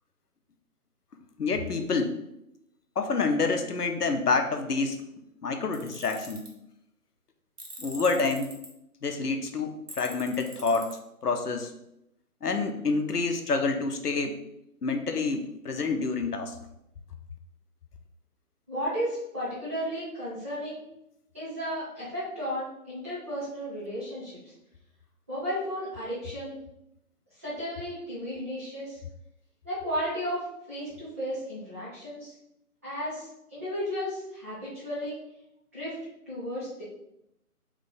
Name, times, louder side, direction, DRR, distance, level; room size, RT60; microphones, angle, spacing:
voice 1, 1.4-2.2 3.0-5.0 5.4-6.4 7.8-8.6 9.0-11.7 12.4-14.4 14.8-16.6, left 4 dB, 85° left, 5 dB, 0.7 m, -28 dB
Tools, 5.7-6.5 7.6-8.7 9.9-10.9, right 2 dB, 80° right, 1.2 m, -43 dB
voice 2, 18.7-20.8 21.3-24.5 25.3-26.6 27.4-29.0 29.6-32.3 32.8-35.2 35.7-36.0 36.3-36.8, equal, 10° right, -12 dB, 0.8 m, -34 dB
3.2 x 3.1 x 4.0 m, 0.83 s
figure-of-eight pair, 145°, 45 cm